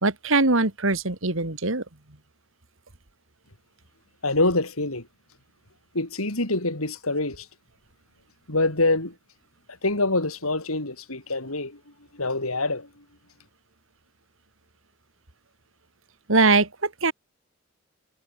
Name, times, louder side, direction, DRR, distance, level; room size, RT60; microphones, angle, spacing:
voice 1, 0.0-1.8 16.3-17.1, right 3 dB, 65° right, 2.5 m, -22 dB
voice 2, 4.2-5.0 5.9-7.5 8.5-9.1 9.8-11.8 12.1-12.9, left 2 dB, 80° left, 5.3 m, -25 dB
head